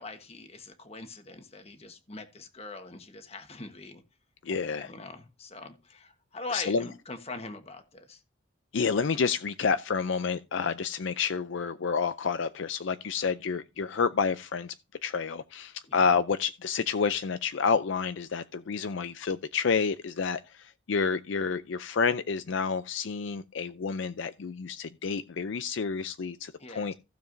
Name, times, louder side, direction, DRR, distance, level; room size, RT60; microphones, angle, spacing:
voice 1, 0.0-4.0 4.5-8.2 15.9-16.0 26.6-26.9, left 3 dB, 30° left, 1.3 m, -42 dB
voice 2, 4.4-4.9 6.5-6.8 8.7-14.7 15.0-26.9, left 5 dB, 65° left, 0.5 m, -29 dB
15.5 x 7.0 x 2.6 m
head